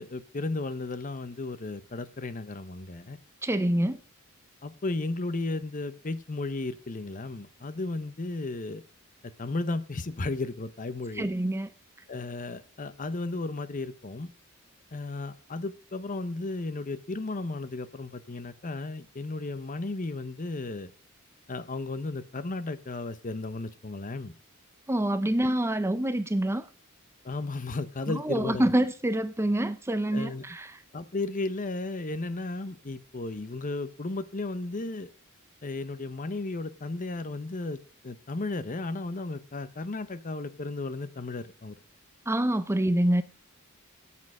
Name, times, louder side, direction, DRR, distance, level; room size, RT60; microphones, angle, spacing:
voice 1, 0.0-3.2 4.6-8.8 9.2-11.3 12.1-14.3 14.9-20.9 21.5-24.3 27.2-28.7 30.1-30.4 30.9-35.1 35.6-37.8 38.0-41.8, left 2 dB, 40° left, 0.8 m, -34 dB
voice 2, 3.4-4.0 11.2-11.7 24.9-26.7 28.1-30.8 42.3-43.2, right 1 dB, 10° right, 0.6 m, -26 dB
9.1 x 8.6 x 6.4 m
head